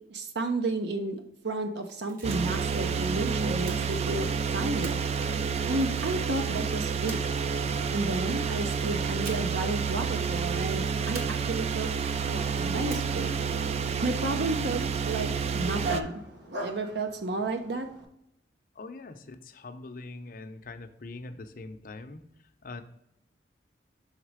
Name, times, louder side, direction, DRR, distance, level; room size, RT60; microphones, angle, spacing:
voice 1, 0.1-5.0 5.7-7.2 7.9-11.9 12.2-13.4 13.8-16.2 16.6-17.9, right 2 dB, 75° right, 5 dB, 0.6 m, -32 dB
sound 1, 1.8-2.7 3.6-4.3 4.8-6.1 7.1-7.8 9.2-9.7 10.0-10.1 11.2-11.9 12.9-13.5, right 3 dB, 55° right, 1.1 m, -45 dB
sound 2, 2.2-16.0, right 6 dB, 35° right, 0.3 m, -29 dB
Dog, 12.7-18.1, right 2 dB, 90° right, 1.1 m, -41 dB
voice 2, 18.7-22.2 22.6-22.8, left 3 dB, 50° left, 8 dB, 0.6 m, -42 dB
6.5 x 4.0 x 4.8 m, 0.80 s
head